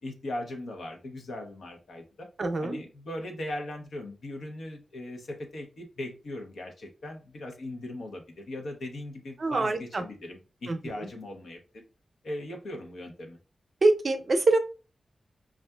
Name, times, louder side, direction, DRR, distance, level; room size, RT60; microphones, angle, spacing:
voice 1, 0.0-2.3 2.6-11.6 12.2-13.4, left 1 dB, 90° left, 3 dB, 0.8 m, -39 dB
voice 2, 2.4-2.8 9.4-10.0 10.7-10.8 13.8-14.6, right 2 dB, 55° right, 7 dB, 0.5 m, -24 dB
5.4 x 2.4 x 2.2 m, 0.33 s
wide cardioid pair, 80°, 0 cm